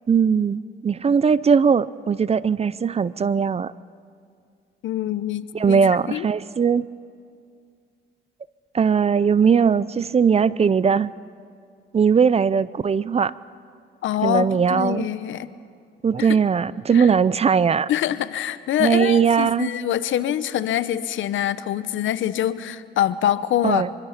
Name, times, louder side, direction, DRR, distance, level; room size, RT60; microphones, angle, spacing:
voice 1, 0.1-3.7 5.5-6.9 8.7-11.1 11.9-13.3 14.2-15.1 16.0-17.9 18.8-19.7 23.6-23.9, right 6 dB, 30° right, 18 dB, 0.5 m, -19 dB
voice 2, 4.8-5.8 6.1-6.3 14.0-15.5 16.2-16.4 16.9-17.1 17.9-23.8, left 11 dB, 75° left, 14 dB, 0.9 m, -25 dB
24.5 x 23.5 x 5.9 m, 2.2 s
cardioid pair, 90°, 20 cm